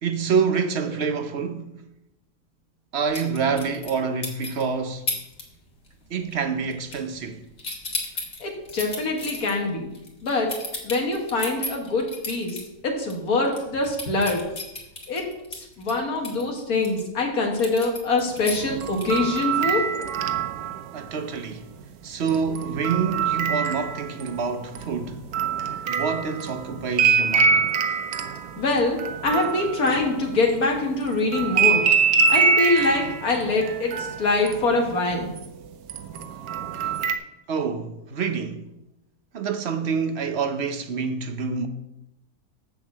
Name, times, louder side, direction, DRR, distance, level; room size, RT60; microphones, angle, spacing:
voice 1, 0.0-1.8 2.9-5.1 6.1-7.4 20.9-21.6 22.0-25.2 25.9-27.6 36.3-36.5 36.8-37.0 37.5-38.7 39.3-41.7, right 5 dB, 55° right, 0.9 m, -27 dB
sound 1, 3.1-4.0 4.2-4.6 5.1-5.4 5.7-6.1 6.3-7.3 7.6-12.6 13.0-13.1 13.5-17.0 17.6-19.3, left 2 dB, 50° left, 2.1 m, -33 dB
voice 2, 8.4-9.9 10.2-10.6 10.8-14.4 15.1-19.9 28.6-31.9 32.3-35.4, left 3 dB, 80° left, 2.0 m, -24 dB
sound 2, 18.5-21.1 22.3-24.4 24.7-30.6 31.3-35.5 35.9-37.1, right 5 dB, 85° right, 1.3 m, -24 dB
7.2 x 6.4 x 7.3 m
omnidirectional pair, 1.5 m